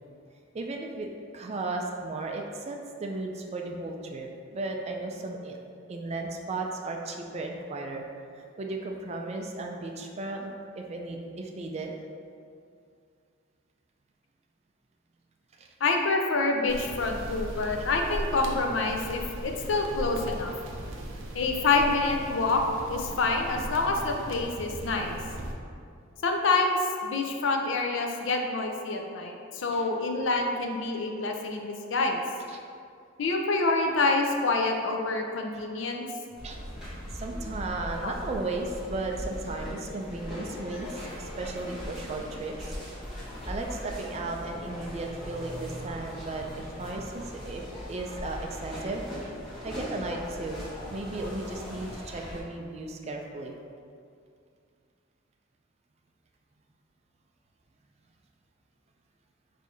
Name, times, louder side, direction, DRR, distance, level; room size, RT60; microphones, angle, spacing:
voice 1, 0.5-1.1 1.3-5.6 5.9-8.0 8.4-11.9 15.6-15.7 29.7-29.9 32.5-32.6 36.4-36.6 37.0-42.8 43.5-47.6 47.9-49.0 49.6-50.6 50.9-53.5, right 2 dB, 30° right, 2 dB, 0.3 m, -35 dB
voice 2, 15.8-20.5 21.3-22.6 22.9-25.2 26.2-32.2 33.2-36.1 38.0-38.1, left 3 dB, 65° left, 3 dB, 0.5 m, -27 dB
sound 1, 16.7-25.5, right 1 dB, 70° right, 0.6 m, -38 dB
sound 2, 36.4-52.4, equal, ahead, 1.4 m, -39 dB
4.1 x 2.7 x 4.7 m, 2.4 s
head